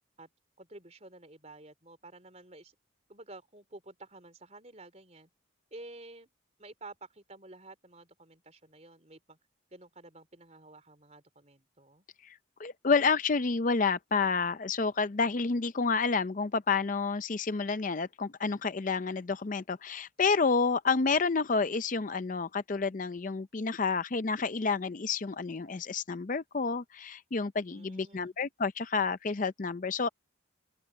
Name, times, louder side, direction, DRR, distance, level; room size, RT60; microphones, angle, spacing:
voice 1, 0.6-2.8 3.1-5.3 5.7-6.3 6.6-9.4 9.7-12.0 27.7-28.4, right 2 dB, 35° right, 3.9 m, -51 dB
voice 2, 12.2-30.1, left 4 dB, 40° left, 0.5 m, -29 dB
open air
head